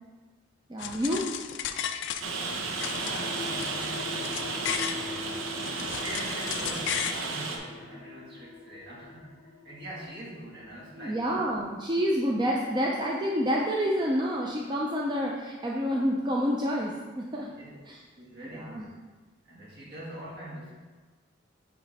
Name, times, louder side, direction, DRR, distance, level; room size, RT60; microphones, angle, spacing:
voice 1, 0.7-1.2 10.9-17.5 17.8-18.0 18.5-18.9, equal, 25° right, -2 dB, 0.5 m, -28 dB
sound 1, 0.8-2.5 2.8-5.0 5.5-7.2, left 9 dB, 65° left, 0.4 m, -34 dB
sound 2, 2.1-13.3, left 3 dB, 85° left, 0.7 m, -44 dB
Rain, 2.2-7.6, right 3 dB, 75° right, 0.7 m, -33 dB
voice 2, 2.9-5.7 5.9-11.4 17.6-17.8 18.2-19.0 19.5-20.7, right 1 dB, 55° right, -5 dB, 1.8 m, -44 dB
9.2 x 3.1 x 4.1 m, 1.3 s
head